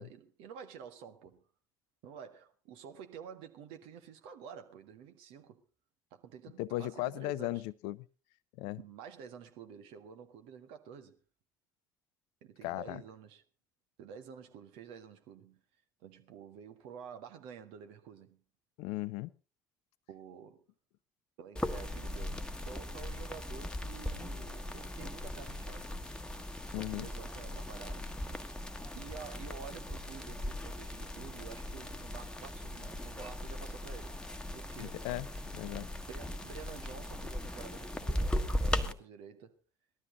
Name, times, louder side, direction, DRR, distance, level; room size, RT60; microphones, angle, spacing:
voice 1, 0.0-1.4 2.0-5.6 6.1-7.6 8.8-11.2 12.4-13.4 14.0-15.6 16.0-18.4 20.1-20.6 21.4-26.0 26.8-28.1 28.4-28.5 28.9-34.2 34.5-35.1 36.1-39.6, right 7 dB, 65° right, 1.6 m, -50 dB
voice 2, 6.6-8.1 8.6-8.8 12.6-13.0 18.8-19.3 26.7-27.1 34.8-35.3 35.5-35.9, left 17 dB, 65° left, 0.6 m, -37 dB
sound 1, 21.6-38.9, left 1 dB, 10° left, 1.5 m, -38 dB
18.5 x 13.0 x 3.9 m
figure-of-eight pair, 55°, 10 cm